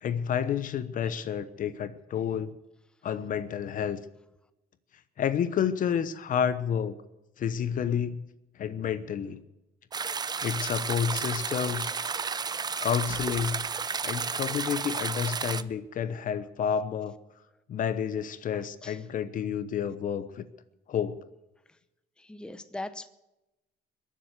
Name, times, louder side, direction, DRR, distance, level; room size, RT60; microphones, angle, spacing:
voice 1, 0.0-2.5 3.0-4.0 5.2-7.0 7.4-8.2 8.6-9.4 10.4-11.9 12.8-13.7 14.0-17.2 17.7-20.4 20.9-21.2, left 8 dB, 50° left, 13 dB, 1.0 m, -30 dB
sound 1, 9.3-9.4 10.3-11.2 12.1-14.5 14.8-14.9 16.4-16.5, right 7 dB, 80° right, 1.8 m, -53 dB
sound 2, 9.9-15.6, right 5 dB, 25° right, 0.6 m, -32 dB
voice 2, 18.5-19.0 22.2-23.1, left 2 dB, 5° left, 11 dB, 0.8 m, -40 dB
22.0 x 7.6 x 8.1 m, 0.95 s
cardioid pair, 110°, 17 cm